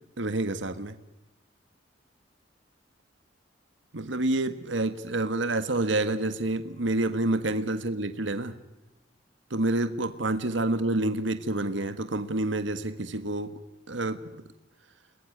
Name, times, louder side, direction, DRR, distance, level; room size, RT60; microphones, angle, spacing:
voice 1, 0.2-0.9 3.9-8.6 9.5-13.5 13.9-14.2, right 2 dB, 75° right, 10 dB, 1.6 m, -28 dB
29.5 x 21.0 x 9.5 m, 1.0 s
head